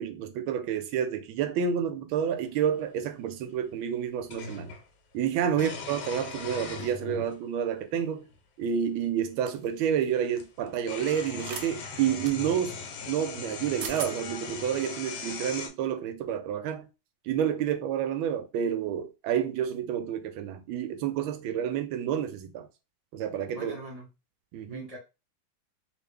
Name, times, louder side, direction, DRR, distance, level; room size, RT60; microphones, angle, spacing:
voice 1, 0.0-4.7 5.1-8.3 8.6-12.8 13.1-16.9 17.2-22.7 23.1-23.7 24.5-24.8, right 8 dB, 90° right, 1.4 m, -29 dB
sound 1, 2.6-2.7 4.3-4.8 5.5-7.4 8.3-8.4 9.9-10.0 10.3-15.7, left 5 dB, 90° left, 1.6 m, -39 dB
sound 2, 9.5-9.7 11.4-11.7 12.2-12.4 13.5-13.6 13.8-14.1, right 6 dB, 70° right, 1.1 m, -37 dB
voice 2, 23.5-24.1 24.7-25.0, right 1 dB, 30° right, 0.7 m, -41 dB
3.3 x 2.6 x 3.3 m
omnidirectional pair, 2.2 m